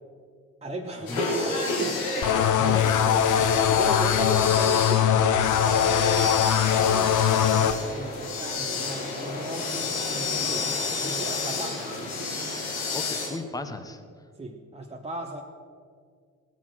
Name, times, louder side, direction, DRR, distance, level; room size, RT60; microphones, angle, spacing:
voice 1, 0.6-3.0 3.7-5.2 5.6-12.2 14.4-15.4, right 2 dB, 15° right, 2 dB, 1.2 m, -36 dB
sound 1, 1.1-13.3, left 3 dB, 75° left, 2.5 m, -30 dB
sound 2, 2.2-7.7, left 9 dB, 45° left, 0.8 m, -21 dB
voice 2, 2.6-3.5 12.9-14.0, left 2 dB, 10° left, 7 dB, 1.3 m, -36 dB
18.0 x 8.6 x 6.1 m, 2.1 s
figure-of-eight pair, 45°, 42 cm